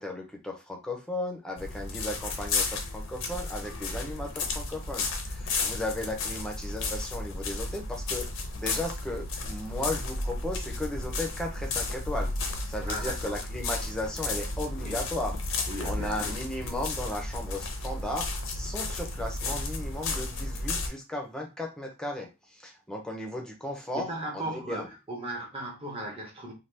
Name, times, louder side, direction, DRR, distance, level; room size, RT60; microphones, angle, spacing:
voice 1, 0.0-8.3 8.6-15.4 15.8-24.1 24.3-24.9, left 1 dB, 5° left, 0.6 m, -35 dB
sound 1, 1.6-20.9, left 3 dB, 55° left, 0.6 m, -33 dB
voice 2, 12.9-13.4 14.8-15.0 15.7-16.4 23.9-26.5, right 1 dB, 25° right, 0.9 m, -37 dB
2.8 x 2.2 x 3.3 m
head